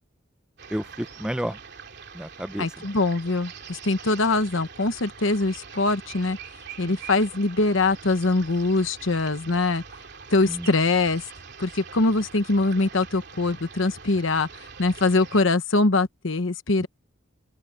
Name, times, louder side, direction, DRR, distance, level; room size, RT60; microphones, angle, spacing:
sound 1, 0.6-15.5, right 6 dB, 50° right, 3.2 m, -43 dB
voice 1, 0.7-1.6 2.1-2.8 6.8-7.0 10.4-10.7 16.8-16.9, equal, 5° right, 0.6 m, -31 dB
voice 2, 2.6-6.4 6.8-9.8 10.3-11.2 11.6-16.9, left 3 dB, 65° left, 1.1 m, -23 dB
open air
head